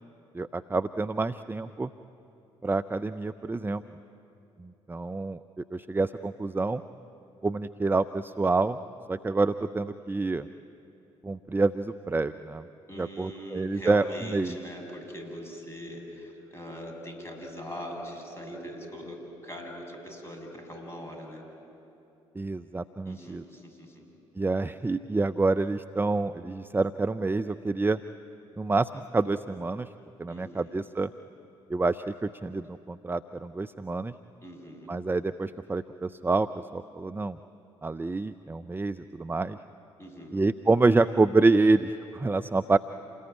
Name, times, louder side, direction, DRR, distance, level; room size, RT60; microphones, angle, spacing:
voice 1, 0.3-1.9 2.6-3.8 4.6-6.8 7.4-8.8 9.1-10.5 11.2-12.7 13.0-14.6 22.4-23.4 24.4-28.0 28.6-29.9 30.2-31.1 31.7-34.1 34.9-37.4 37.8-39.6 40.3-42.8, right 3 dB, 15° right, 11 dB, 0.6 m, -27 dB
voice 2, 12.9-21.4 23.0-24.1 30.3-30.7 34.4-34.9 40.0-40.4, equal, 15° left, 1 dB, 8.0 m, -41 dB
27.5 x 20.5 x 9.9 m, 2.9 s
figure-of-eight pair, 50°, 15 cm